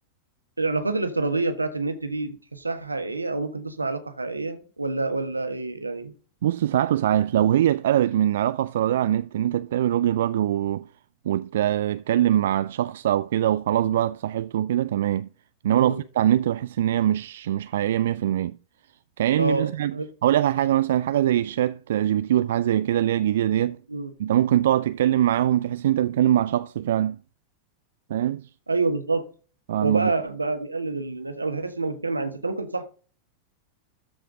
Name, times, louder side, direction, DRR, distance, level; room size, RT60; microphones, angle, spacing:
voice 1, 0.6-6.1 15.7-16.0 19.4-20.1 23.9-24.1 28.7-29.2 29.8-32.8, right 3 dB, 80° right, 1.3 m, -27 dB
voice 2, 6.4-10.9 11.3-15.3 15.6-18.6 19.2-19.9 20.2-23.8 24.2-27.2 28.1-28.4 29.7-30.1, right 11 dB, 60° right, 0.3 m, -22 dB
13.5 x 5.1 x 3.7 m
figure-of-eight pair, 90°, 0 cm